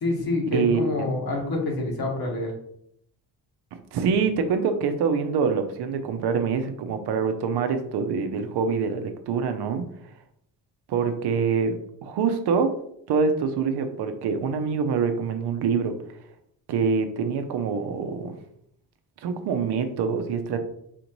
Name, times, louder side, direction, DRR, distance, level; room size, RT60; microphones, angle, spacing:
voice 1, 0.0-2.5, left 2 dB, 60° left, 0 dB, 1.4 m, -27 dB
voice 2, 0.5-1.1 3.7-9.8 10.9-11.7 12.0-12.7 13.1-15.9 16.7-18.3 19.2-20.6, right 5 dB, 70° right, 7 dB, 0.6 m, -25 dB
4.2 x 2.6 x 3.0 m, 0.71 s
cardioid pair, 75°, 41 cm